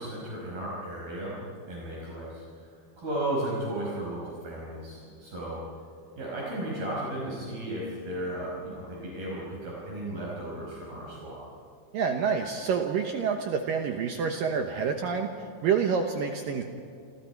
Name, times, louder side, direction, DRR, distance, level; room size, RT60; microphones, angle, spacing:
voice 1, 0.0-1.4 1.7-2.4 3.0-5.6 6.2-11.4, right 1 dB, 55° right, -5 dB, 6.9 m, -34 dB
voice 2, 11.9-15.3 15.6-16.6, right 6 dB, 70° right, 4 dB, 2.2 m, -27 dB
28.0 x 27.5 x 4.7 m, 2.4 s
omnidirectional pair, 5.3 m